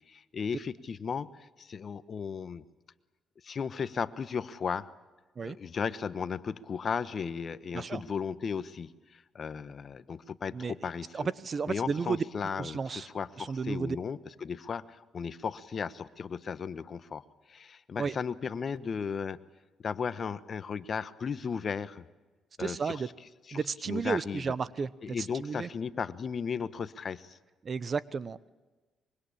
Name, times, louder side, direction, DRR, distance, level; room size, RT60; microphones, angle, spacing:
voice 1, 0.1-2.6 3.4-4.9 5.4-11.3 11.7-17.2 17.5-19.4 19.8-22.1 22.6-23.0 23.5-23.6 23.9-24.5 25.0-27.4, left 6 dB, 45° left, 14 dB, 1.2 m, -35 dB
voice 2, 10.5-12.2 12.6-13.1 13.4-14.0 18.0-18.1 22.6-23.1 23.5-25.7 27.6-28.5, right 5 dB, 40° right, 18 dB, 1.0 m, -33 dB
24.5 x 23.0 x 8.7 m, 1.2 s
cardioid pair, 90°, 0 cm